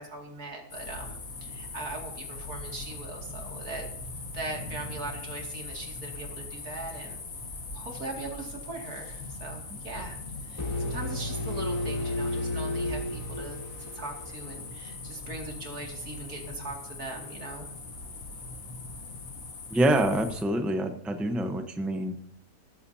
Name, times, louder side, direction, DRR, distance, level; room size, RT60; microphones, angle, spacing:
voice 1, 0.0-3.9 4.3-7.2 7.7-10.2 10.4-17.7, right 2 dB, 75° right, 1 dB, 3.0 m, -40 dB
sound 1, 0.7-20.4, left 3 dB, 65° left, 1.9 m, -41 dB
sound 2, 10.6-14.5, left 2 dB, 25° left, 4.3 m, -32 dB
voice 2, 19.7-22.2, right 1 dB, ahead, 6 dB, 0.7 m, -26 dB
15.5 x 14.0 x 2.8 m, 0.70 s
omnidirectional pair, 1.6 m